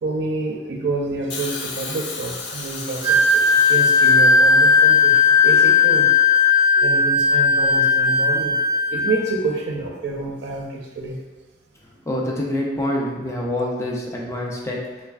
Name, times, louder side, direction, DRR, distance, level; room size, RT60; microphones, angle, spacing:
voice 1, 0.0-6.1 6.8-8.5 8.9-11.2, right 3 dB, 70° right, 0 dB, 0.4 m, -28 dB
Hiss, 1.3-5.4 6.5-6.6, left 4 dB, 70° left, 0.5 m, -34 dB
Wind instrument woodwind instrument, 3.0-9.2, left 4 dB, 30° right, 0.6 m, -16 dB
voice 2, 12.1-14.8, left 1 dB, 15° left, -3 dB, 0.4 m, -26 dB
3.3 x 3.3 x 2.3 m, 1.2 s
head